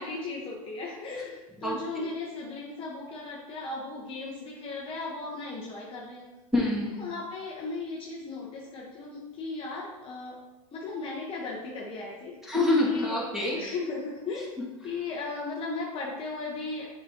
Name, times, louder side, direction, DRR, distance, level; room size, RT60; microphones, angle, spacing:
voice 1, 0.0-6.2 7.0-10.4 10.7-12.5 12.8-13.2 13.6-14.5 14.8-16.9, left 3 dB, 30° left, -4 dB, 1.1 m, -36 dB
voice 2, 1.6-2.0 6.5-7.0 12.5-13.6, left 2 dB, ahead, -6 dB, 2.1 m, -26 dB
7.3 x 5.0 x 2.9 m, 1.1 s
hypercardioid pair, 110°, 19 cm